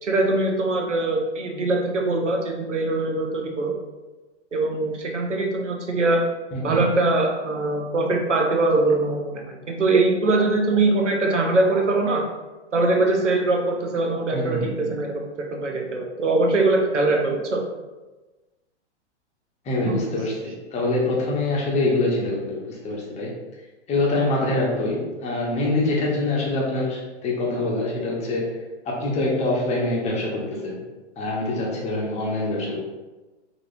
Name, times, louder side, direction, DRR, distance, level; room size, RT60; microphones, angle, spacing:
voice 1, 0.0-3.7 4.5-6.2 6.6-12.2 12.7-17.6 19.8-20.0, right 2 dB, 85° right, 1 dB, 0.8 m, -22 dB
voice 2, 6.5-6.8 14.3-14.6 19.6-23.3 23.9-28.6 28.8-30.8 31.2-32.8, left 2 dB, 20° left, -3 dB, 0.9 m, -25 dB
3.9 x 2.9 x 2.6 m, 1.2 s
hypercardioid pair, 115°, 35 cm